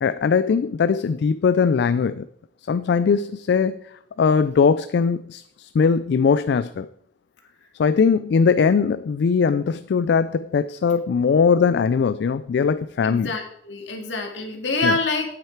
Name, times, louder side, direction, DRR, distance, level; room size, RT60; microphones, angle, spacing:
voice 1, 0.0-2.3 2.7-3.8 4.2-6.9 7.8-13.3 14.8-15.0, left 5 dB, 65° left, 13 dB, 0.3 m, -20 dB
voice 2, 13.0-15.4, left 3 dB, 80° left, 2 dB, 2.0 m, -26 dB
9.0 x 8.8 x 4.5 m, 0.70 s
head